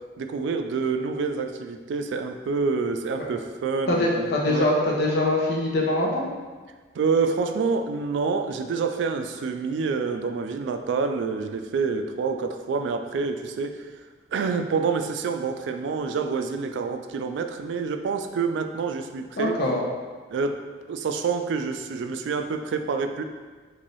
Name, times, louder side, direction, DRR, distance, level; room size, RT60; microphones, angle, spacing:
voice 1, 0.2-4.7 6.9-13.9 14.3-19.6 20.3-20.6 20.9-23.2, right 5 dB, 80° right, 6 dB, 0.3 m, -27 dB
voice 2, 3.9-6.2 19.4-19.8, left 1 dB, 60° left, -2 dB, 0.7 m, -23 dB
3.2 x 2.6 x 3.9 m, 1.4 s
head